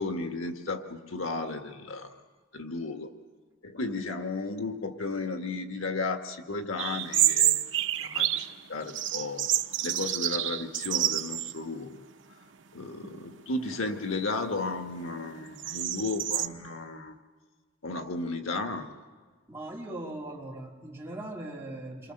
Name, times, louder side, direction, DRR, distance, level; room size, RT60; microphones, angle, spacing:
voice 1, 0.0-2.2 2.5-3.1 3.6-7.6 8.0-9.5 9.8-12.0 12.7-17.2 17.8-18.9, left 3 dB, 85° left, 6 dB, 1.8 m, -34 dB
sound 1, 6.8-8.5 8.9-11.6 11.9-12.0 12.8-13.2 13.6-16.5, right 12 dB, 65° right, 0.9 m, -28 dB
voice 2, 19.5-22.1, right 1 dB, 10° right, -3 dB, 3.4 m, -39 dB
28.5 x 24.0 x 6.8 m, 1.4 s
head